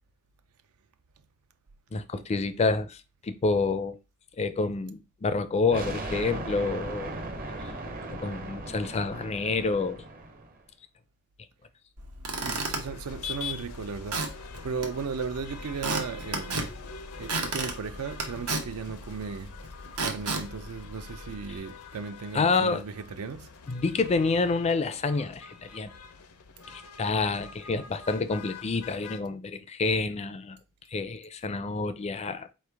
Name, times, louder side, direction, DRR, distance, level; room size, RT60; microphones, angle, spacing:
voice 1, 1.9-4.0 4.4-7.1 7.6-7.7 8.1-10.0 22.3-22.8 23.7-25.9 26.7-30.6 30.9-32.5, left 3 dB, 30° left, 0.4 m, -28 dB
sound 1, 5.7-10.6, right 2 dB, 40° right, 0.7 m, -37 dB
Squeak / Wood, 12.0-21.6, right 3 dB, 85° right, 1.0 m, -35 dB
voice 2, 12.4-16.7 17.2-19.6 20.0-23.6, right 5 dB, 70° right, 0.4 m, -36 dB
sound 2, 12.7-29.2, left 6 dB, 75° left, 0.6 m, -45 dB
4.3 x 3.2 x 3.4 m
head